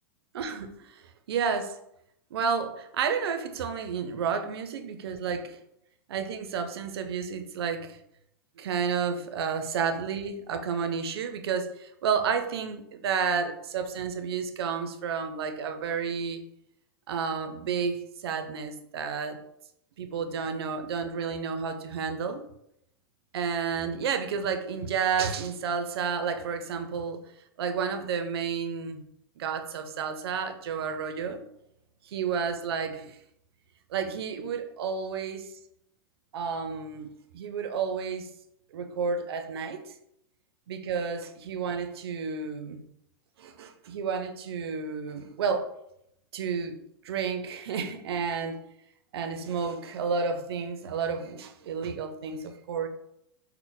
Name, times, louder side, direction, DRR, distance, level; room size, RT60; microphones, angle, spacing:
voice 1, 0.3-1.0 1.3-1.8 2.3-5.6 6.1-8.0 8.6-16.4 17.1-19.4 20.0-22.4 23.3-27.2 27.6-29.0 29.4-31.4 32.1-33.2 33.9-35.5 36.3-38.3 38.7-39.8 40.7-42.8 43.4-45.7 46.3-46.8 47.0-48.6 49.1-52.9, right 6 dB, 85° right, 7 dB, 0.5 m, -31 dB
4.1 x 2.1 x 3.8 m, 0.78 s
supercardioid pair, 135°, 13 cm